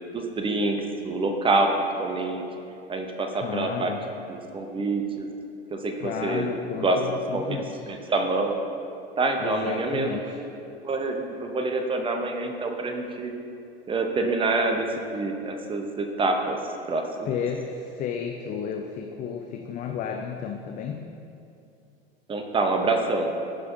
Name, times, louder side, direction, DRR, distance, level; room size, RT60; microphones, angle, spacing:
voice 1, 0.1-0.8 1.0-2.4 2.9-3.9 4.3-5.3 5.7-6.5 6.8-7.6 7.9-8.6 9.2-10.4 10.8-13.3 13.9-16.6 16.9-17.3 22.3-23.3, right 3 dB, 15° right, 4 dB, 0.8 m, -26 dB
voice 2, 3.4-4.0 6.0-7.8 9.4-10.4 17.3-21.0, left 7 dB, 25° left, 3 dB, 0.5 m, -32 dB
15.5 x 5.6 x 2.7 m, 2.7 s
figure-of-eight pair, 90°, 30 cm